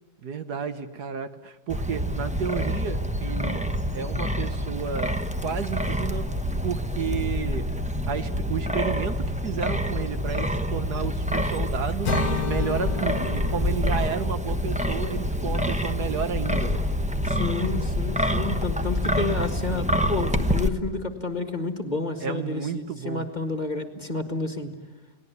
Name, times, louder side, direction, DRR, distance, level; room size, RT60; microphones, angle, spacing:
voice 1, 0.2-3.6 3.9-5.1 5.4-6.2 6.6-7.7 8.1-12.1 12.4-16.8 22.2-23.3, right 7 dB, 65° right, 10 dB, 1.6 m, -32 dB
Wind, 1.7-20.7, equal, 5° right, 0.7 m, -27 dB
sound 1, 12.0-16.1, left 7 dB, 55° left, 1.6 m, -33 dB
voice 2, 17.2-24.7, left 3 dB, 25° left, 6 dB, 1.9 m, -30 dB
29.5 x 19.5 x 9.4 m, 1.1 s
omnidirectional pair, 2.0 m